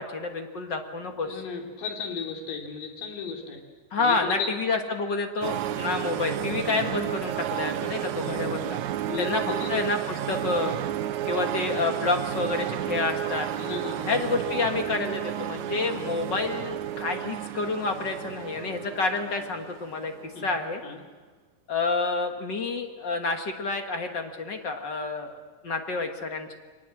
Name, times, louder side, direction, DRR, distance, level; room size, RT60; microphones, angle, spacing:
voice 1, 0.0-1.4 3.9-8.8 9.2-9.4 9.7-10.7 11.2-13.5 14.0-20.8 21.7-25.4 25.6-26.5, left 3 dB, 50° left, 5 dB, 1.5 m, -29 dB
voice 2, 1.2-3.6 4.0-4.5 8.1-8.6 9.1-9.7 10.6-10.7 13.6-14.2 20.3-20.5 20.8-21.0, left 5 dB, 85° left, 1 dB, 4.6 m, -35 dB
sound 1, 5.4-20.5, right 12 dB, 70° right, 2.0 m, -32 dB
23.0 x 20.0 x 7.8 m, 1.4 s
omnidirectional pair, 3.8 m